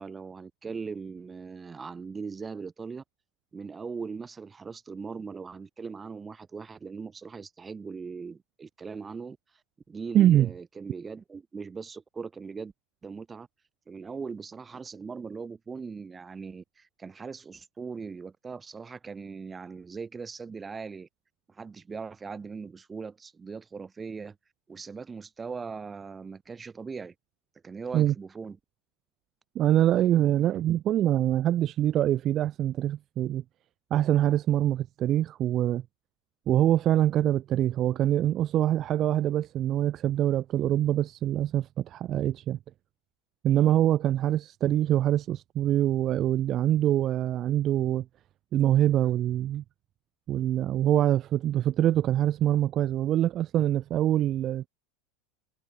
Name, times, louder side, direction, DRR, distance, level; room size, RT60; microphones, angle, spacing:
voice 1, 0.0-3.0 3.5-9.4 9.9-12.7 13.0-13.5 13.9-21.1 21.5-24.4 24.7-27.1 27.6-28.6, right 5 dB, 20° right, 1.7 m, -40 dB
voice 2, 10.1-10.5 27.9-28.1 29.6-33.4 33.9-35.8 36.5-42.6 43.4-48.0 48.5-49.6 50.3-54.7, right 12 dB, 40° right, 0.5 m, -24 dB
supercardioid pair, 115°, 0 cm